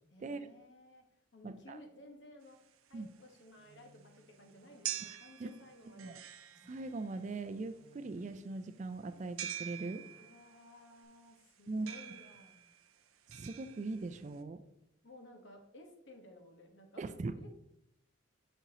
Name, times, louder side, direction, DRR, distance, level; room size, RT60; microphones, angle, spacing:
voice 1, 0.1-1.0 1.3-2.6 2.9-6.2 10.2-12.6 15.0-17.5, left 1 dB, 55° left, 3 dB, 1.2 m, -56 dB
voice 2, 1.4-1.8 2.9-3.1 5.1-5.5 6.0-6.2 6.7-10.1 11.7-11.9 13.3-14.6 17.0-17.5, right 3 dB, 35° right, 11 dB, 0.3 m, -41 dB
sound 1, 2.5-14.4, right 10 dB, 85° right, 0.6 m, -47 dB
sound 2, 3.1-11.1, right 1 dB, 10° right, 1.2 m, -69 dB
6.8 x 6.0 x 2.8 m, 0.79 s
head